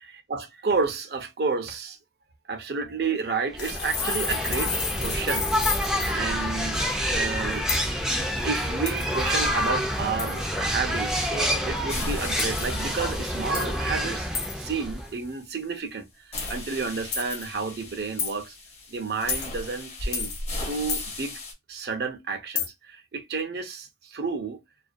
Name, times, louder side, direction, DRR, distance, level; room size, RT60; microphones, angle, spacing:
voice 1, 0.1-2.0 2.5-5.8 6.1-6.8 7.1-7.7 8.2-16.1 16.5-18.5 18.9-20.3 20.6-21.4 21.7-24.6, right 4 dB, 60° right, 0.5 m, -31 dB
sound 1, 3.5-15.2, equal, 5° right, 0.3 m, -28 dB
sound 2, 3.6-6.2 7.7-7.9 8.9-9.3 10.2-10.4 12.4-12.7 13.5-13.8 14.3-14.6 16.4-16.6 17.1-17.5 18.2-18.3 19.3-19.5 20.1-20.4 20.9-21.1 22.6-22.7, left 6 dB, 65° left, 0.8 m, -30 dB
sound 3, 11.9-15.8 16.3-21.5, left 2 dB, 35° left, 0.7 m, -38 dB
2.4 x 2.1 x 2.5 m
head